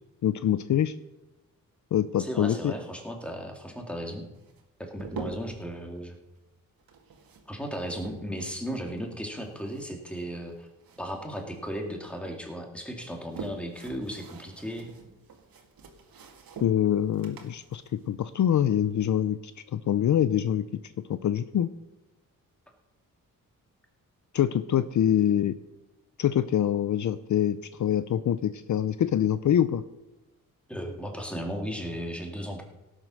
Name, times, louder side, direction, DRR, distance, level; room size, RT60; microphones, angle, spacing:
voice 1, 0.2-0.9 1.9-2.7 16.6-20.7 21.1-21.7 24.3-25.6 26.2-29.8, left 10 dB, 60° left, 13 dB, 0.6 m, -25 dB
voice 2, 2.2-4.3 4.8-6.2 7.5-10.7 11.0-14.9 30.7-32.6, equal, 5° left, 2 dB, 2.3 m, -35 dB
sound 1, 4.4-5.7 6.8-9.1 9.4-11.2 11.5-12.4 12.9-19.0, right 4 dB, 85° right, 2.2 m, -45 dB
17.0 x 7.6 x 6.3 m, 1.0 s
wide cardioid pair, 120°, 34 cm